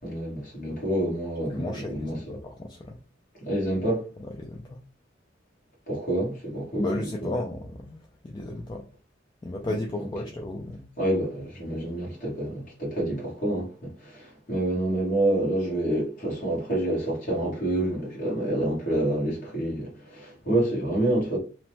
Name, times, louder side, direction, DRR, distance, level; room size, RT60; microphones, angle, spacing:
voice 1, 0.0-2.2 3.4-4.1 5.9-7.0 9.7-9.8 11.0-21.4, right 1 dB, 45° left, 1.4 m, -28 dB
voice 2, 1.5-3.0 4.2-4.8 6.8-8.8 9.4-10.9, left 1 dB, 25° left, 0.3 m, -34 dB
2.9 x 2.1 x 2.9 m
head